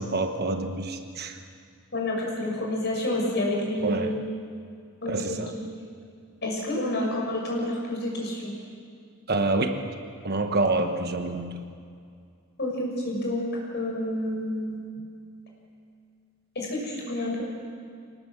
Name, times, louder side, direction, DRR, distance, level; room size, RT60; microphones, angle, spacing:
voice 1, 0.0-1.4 3.8-4.1 5.1-5.5 9.3-9.8 10.2-11.5, right 2 dB, 45° right, 6 dB, 1.2 m, -27 dB
voice 2, 1.9-4.2 5.0-5.4 6.4-8.5 12.6-13.4 13.7-14.8 16.5-17.4, left 1 dB, 50° left, -2 dB, 6.5 m, -29 dB
24.0 x 19.5 x 7.5 m, 2.3 s
head